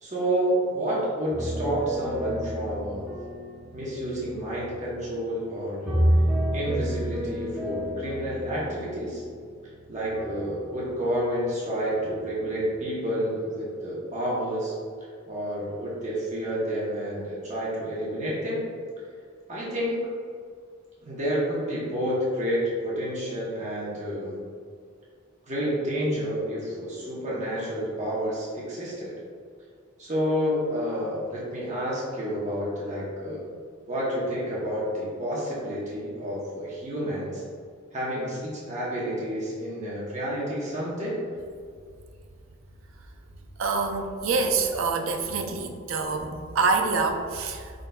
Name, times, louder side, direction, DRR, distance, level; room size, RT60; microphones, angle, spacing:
voice 1, 0.0-3.1 3.7-6.0 6.5-9.2 9.9-14.7 15.3-18.6 19.5-20.1 21.0-24.4 25.5-29.1 30.0-33.4 33.9-37.4 37.9-41.2, equal, 35° right, -7 dB, 1.0 m, -29 dB
sound 1, 1.3-5.4 5.8-11.3 11.8-12.3, equal, 10° right, 0.6 m, -30 dB
voice 2, 43.6-47.7, right 4 dB, 90° right, 4 dB, 0.5 m, -26 dB
5.3 x 3.9 x 2.3 m, 2.2 s
head